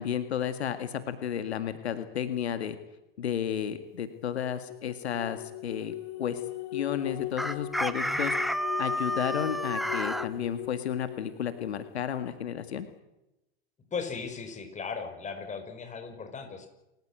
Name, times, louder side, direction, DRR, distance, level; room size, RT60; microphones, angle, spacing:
voice 1, 0.0-2.8 3.2-6.4 6.7-8.3 8.8-12.9, left 9 dB, 85° left, 10 dB, 2.0 m, -32 dB
sound 1, 4.3-12.1, left 17 dB, 55° left, 1.6 m, -39 dB
Chicken rooster, 7.4-10.3, equal, ahead, 1.2 m, -30 dB
voice 2, 13.9-16.7, left 5 dB, 20° left, 6 dB, 5.6 m, -37 dB
28.5 x 14.5 x 8.9 m, 0.93 s
hypercardioid pair, 100°, 32 cm